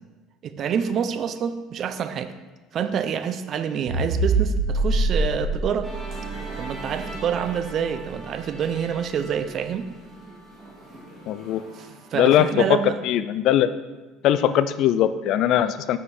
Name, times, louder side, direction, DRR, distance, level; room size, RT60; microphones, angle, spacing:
voice 1, 0.4-2.3 2.7-5.9 6.6-9.9 11.8-13.0, right 7 dB, 50° right, 11 dB, 0.6 m, -27 dB
sound 1, 3.9-8.4, right 2 dB, 75° right, 2.3 m, -26 dB
Musical instrument, 5.8-12.3, right 2 dB, 25° right, 2.5 m, -40 dB
voice 2, 11.3-11.6 12.1-12.8 13.0-13.7 14.2-16.0, left 11 dB, 65° left, 13 dB, 0.4 m, -20 dB
7.4 x 6.4 x 4.3 m, 1.2 s
supercardioid pair, 100°, 0 cm